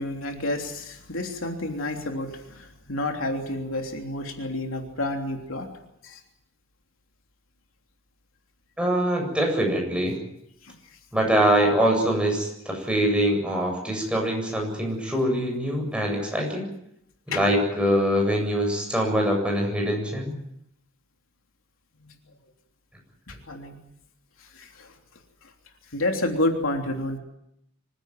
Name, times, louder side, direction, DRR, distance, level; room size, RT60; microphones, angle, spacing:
voice 1, 0.0-5.7 6.0-6.2 10.6-10.7 17.3-17.4 22.0-22.1 23.3-23.8 24.5-24.9 25.9-27.2, left 1 dB, 70° left, 3 dB, 3.3 m, -29 dB
voice 2, 8.8-10.2 11.1-16.7 17.3-20.3, equal, 5° right, 0 dB, 7.9 m, -23 dB
25.5 x 16.5 x 9.2 m, 0.78 s
head